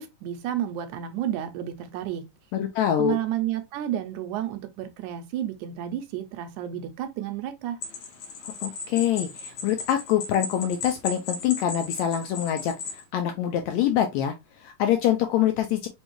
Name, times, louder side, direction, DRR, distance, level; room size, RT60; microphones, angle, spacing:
voice 1, 0.0-2.2 3.0-7.8, right 11 dB, 80° right, 2.0 m, -31 dB
voice 2, 2.5-3.2 8.6-15.9, left 10 dB, 80° left, 1.6 m, -25 dB
sound 1, 7.8-13.0, left 5 dB, 65° left, 1.9 m, -36 dB
5.2 x 2.3 x 2.9 m
omnidirectional pair, 3.6 m